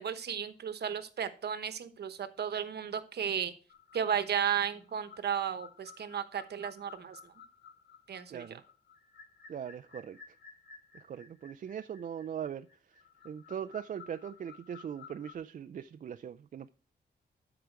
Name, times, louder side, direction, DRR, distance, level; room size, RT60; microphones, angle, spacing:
voice 1, 0.0-3.5 3.9-7.3 8.1-8.4, right 8 dB, 65° right, 1.0 m, -34 dB
sound 1, 3.7-15.3, left 6 dB, 65° left, 1.4 m, -55 dB
voice 2, 8.3-8.6 9.5-10.4 10.9-13.0 13.2-16.7, right 8 dB, 50° right, 0.4 m, -41 dB
13.0 x 4.9 x 4.5 m
wide cardioid pair, 120°, 18 cm